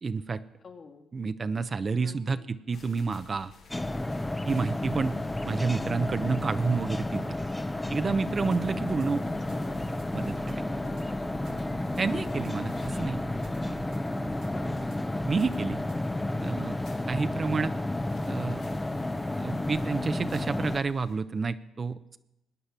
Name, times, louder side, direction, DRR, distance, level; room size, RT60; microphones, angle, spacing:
voice 1, 0.0-0.4 1.1-3.5 4.4-5.1 5.4-7.4 7.9-9.2 10.1-10.6 12.0-13.2 13.6-13.8 15.3-15.8 16.4-16.7 17.1-17.7 18.3-18.6 19.4-22.2, right 4 dB, 40° right, 11 dB, 0.7 m, -29 dB
voice 2, 0.6-1.1 2.0-2.5 9.5-10.0 10.8-11.3 14.5-14.8, left 4 dB, 55° left, -2 dB, 2.9 m, -48 dB
sound 1, 2.7-21.2, left 4 dB, 75° left, 2.7 m, -55 dB
sound 2, 3.7-20.8, left 1 dB, 15° left, 0.8 m, -32 dB
sound 3, 8.3-16.1, right 5 dB, 70° right, 1.7 m, -49 dB
18.5 x 9.7 x 5.9 m, 0.90 s
supercardioid pair, 55°, 0 cm